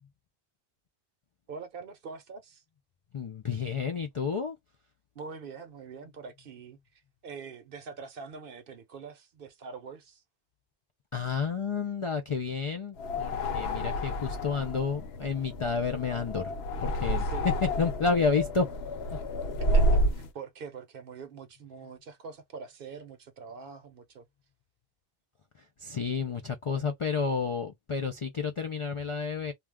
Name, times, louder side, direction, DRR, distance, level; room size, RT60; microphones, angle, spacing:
voice 1, 1.5-2.6 5.1-10.2 17.2-17.5 19.7-24.3, right 5 dB, 60° right, 0.8 m, -44 dB
voice 2, 3.1-4.6 11.1-16.5 16.8-17.3 17.6-18.7 19.1-19.2 25.5-29.5, left 5 dB, 55° left, 0.3 m, -30 dB
sound 1, 13.0-20.3, equal, 70° left, 0.9 m, -30 dB
2.3 x 2.2 x 3.4 m
omnidirectional pair, 1.1 m